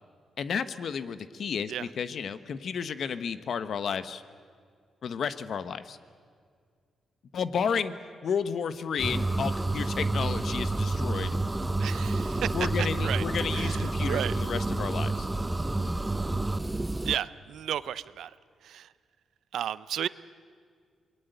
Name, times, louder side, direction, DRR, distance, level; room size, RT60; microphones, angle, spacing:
voice 1, 0.4-4.2 5.0-6.0 7.3-7.9 8.2-11.4 12.5-15.3, left 6 dB, 65° left, 12 dB, 1.1 m, -32 dB
sound 1, 9.0-17.2, right 2 dB, 15° right, 0.7 m, -29 dB
voice 2, 11.8-13.2 13.5-14.4 17.0-18.3 18.6-18.9 19.5-20.1, right 10 dB, 80° right, 17 dB, 0.6 m, -33 dB
27.5 x 21.0 x 8.1 m, 2.1 s
cardioid pair, 95°, 0 cm